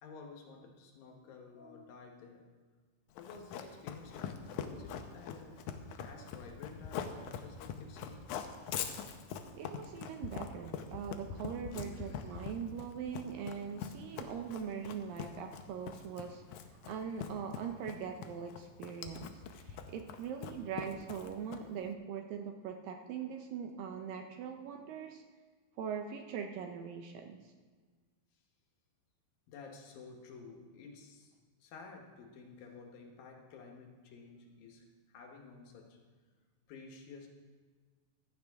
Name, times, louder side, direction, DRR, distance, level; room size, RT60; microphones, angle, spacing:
voice 1, 0.0-2.5 3.1-5.7 6.0-8.3 8.9-9.0 11.7-12.4 29.5-31.3 31.6-36.0 36.7-37.3, left 4 dB, 70° left, 2 dB, 2.7 m, -52 dB
Run, 3.2-21.8, left 7 dB, 85° left, 1.7 m, -43 dB
voice 2, 9.6-25.2 25.8-27.5, right 7 dB, 75° right, 5 dB, 2.1 m, -42 dB
15.0 x 12.0 x 3.5 m, 1.5 s
omnidirectional pair, 4.6 m